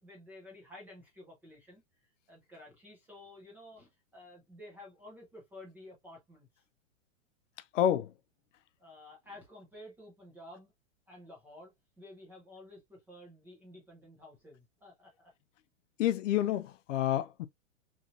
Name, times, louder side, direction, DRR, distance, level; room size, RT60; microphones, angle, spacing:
voice 1, 0.0-6.6 8.8-10.7 11.1-15.3, left 1 dB, 5° right, 0.4 m, -52 dB
voice 2, 7.7-8.1 16.0-17.5, left 11 dB, 70° left, 0.5 m, -28 dB
3.1 x 2.6 x 2.4 m
hypercardioid pair, 140°, 39 cm